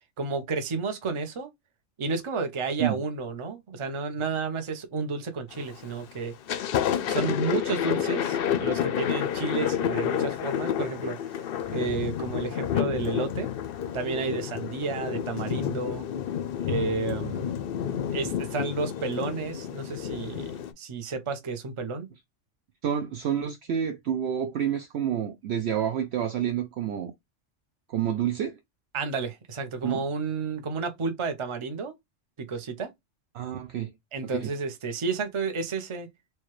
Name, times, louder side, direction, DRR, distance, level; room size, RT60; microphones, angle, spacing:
voice 1, 0.2-1.5 2.0-6.3 7.1-11.2 11.7-13.5 13.9-16.1 16.6-17.5 18.1-20.5 20.8-22.1 28.9-31.9 32.4-32.9 34.1-36.1, right 4 dB, 30° right, 0.6 m, -31 dB
Thunder, 5.5-5.9 6.3-20.7, left 9 dB, 60° left, 0.6 m, -30 dB
voice 2, 22.8-27.1 27.9-28.6 29.8-30.0 33.3-33.9 34.3-34.5, right 9 dB, 65° right, 0.8 m, -28 dB
4.5 x 2.3 x 3.1 m
omnidirectional pair, 1.3 m